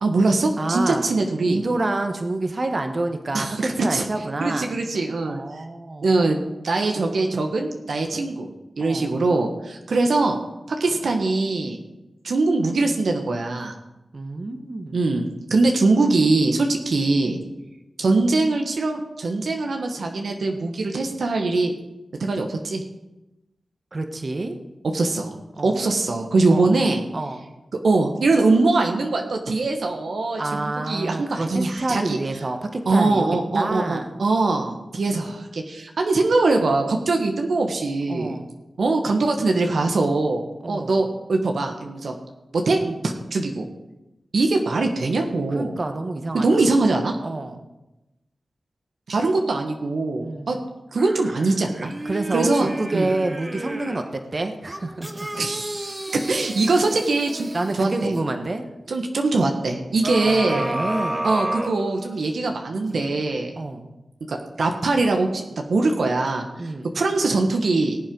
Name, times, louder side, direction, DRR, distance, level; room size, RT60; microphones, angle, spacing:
voice 1, 0.0-1.6 3.3-4.0 4.4-5.6 6.0-6.4 6.6-8.5 8.8-10.4 10.7-11.8 12.2-13.7 14.9-17.4 18.0-21.7 22.2-22.8 24.9-25.4 25.6-27.0 27.8-32.2 32.9-38.4 38.8-42.2 42.5-43.7 44.3-45.7 46.3-47.2 49.1-50.6 50.9-51.9 52.3-53.1 55.4-57.5 57.8-58.1 58.9-60.7 61.2-63.5 64.3-68.0, right 3 dB, 75° right, 3 dB, 1.5 m, -22 dB
voice 2, 0.6-1.0 1.4-4.7 5.3-6.1 8.8-9.1 14.1-15.1 23.9-24.6 25.6-25.9 26.5-26.7 27.1-27.4 30.4-34.1 38.1-38.5 40.6-41.0 45.5-46.6 47.2-47.6 50.2-50.6 52.0-54.0 54.3-55.3 57.5-58.6 60.2-61.3 63.6-63.9 66.6-66.9, right 2 dB, 50° right, 6 dB, 1.6 m, -28 dB
sound 1, 51.0-54.1 54.6-58.3 60.0-62.4 62.9-63.0, right 1 dB, 25° right, 1.7 m, -32 dB
19.0 x 7.6 x 5.4 m, 0.99 s
cardioid pair, 40°, 0 cm